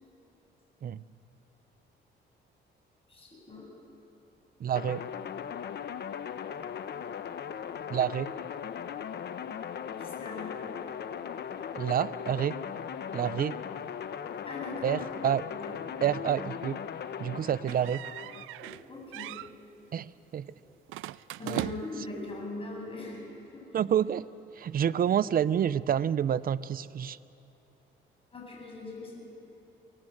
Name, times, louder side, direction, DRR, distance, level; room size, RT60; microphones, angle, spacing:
voice 1, 3.1-3.7 10.0-10.7 14.3-15.8 18.6-19.4 20.6-20.7 21.4-23.3 23.5-23.7 24.8-24.9 28.3-29.2, left 3 dB, 30° left, -1 dB, 7.6 m, -41 dB
voice 2, 4.6-5.1 7.9-8.3 11.7-12.6 13.1-13.6 14.8-15.4 16.0-16.8 17.2-18.0 19.9-20.5 21.5-21.6 23.7-24.3 24.5-27.2, right 9 dB, 45° right, 17 dB, 0.6 m, -28 dB
sound 1, 4.7-18.4, left 8 dB, 60° left, 1.0 m, -38 dB
sound 2, 17.7-18.8 19.1-19.5 20.9-22.1, right 16 dB, 90° right, 0.4 m, -38 dB
23.0 x 18.5 x 7.8 m, 2.8 s
cardioid pair, 90°, 20 cm